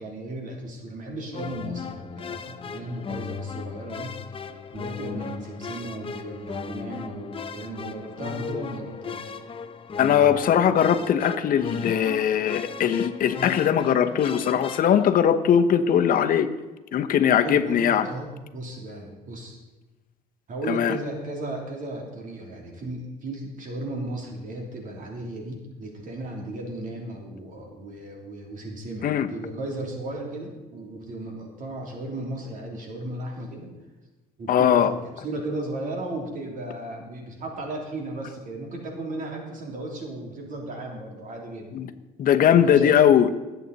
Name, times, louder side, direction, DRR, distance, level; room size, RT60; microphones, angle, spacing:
voice 1, 0.0-9.4 17.4-19.6 20.5-33.7 34.4-41.7 42.5-42.9, right 1 dB, 50° right, 0 dB, 3.1 m, -35 dB
sound 1, 1.3-15.1, left 6 dB, 30° left, 0.9 m, -36 dB
voice 2, 10.0-16.5 16.9-18.1 20.7-21.0 29.0-29.3 34.5-34.9 41.7-41.9 42.2-43.3, left 9 dB, 55° left, 8 dB, 1.0 m, -20 dB
20.0 x 8.2 x 4.1 m, 1.1 s
cardioid pair, 110°, 17 cm